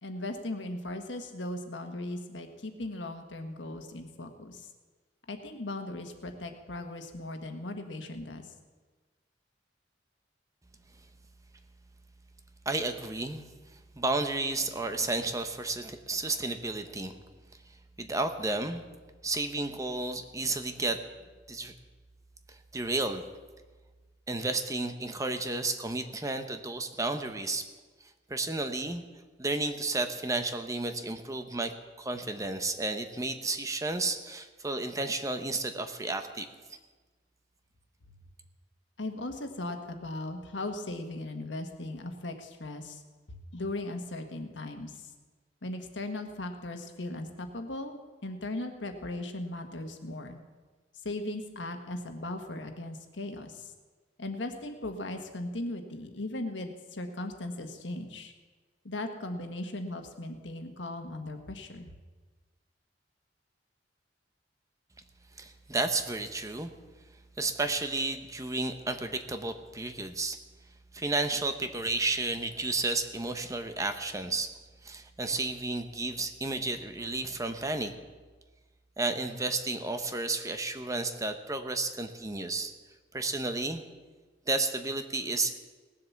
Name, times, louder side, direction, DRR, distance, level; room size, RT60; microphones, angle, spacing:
voice 1, 0.0-4.7 5.3-8.5 39.0-43.0 43.3-45.1 45.6-50.4 51.0-53.7 54.2-58.3 58.8-61.9, left 2 dB, 90° left, 6 dB, 1.5 m, -38 dB
voice 2, 12.6-13.4 13.7-17.2 18.0-18.8 19.2-21.0 21.5-21.7 22.5-23.2 24.3-27.7 28.3-29.0 29.4-36.5 65.4-66.7 67.4-70.4 70.9-74.5 74.8-77.9 79.0-82.7 83.1-83.8 84.5-85.5, right 2 dB, 20° right, 7 dB, 0.9 m, -32 dB
18.0 x 7.8 x 7.1 m, 1.3 s
head